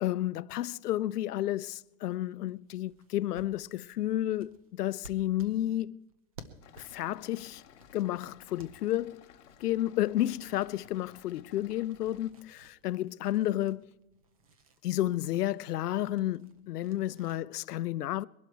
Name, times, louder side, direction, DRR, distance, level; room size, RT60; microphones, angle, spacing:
voice 1, 0.0-6.0 6.8-7.6 7.9-9.3 9.6-12.5 12.8-13.9 14.8-18.3, left 14 dB, 85° left, 0.7 m, -31 dB
sound 1, 1.7-9.1 9.5-17.4, right 3 dB, 25° right, 0.6 m, -57 dB
sound 2, 6.6-12.3, left 9 dB, 50° left, 1.3 m, -56 dB
22.0 x 12.0 x 4.5 m
supercardioid pair, 180°, 45 cm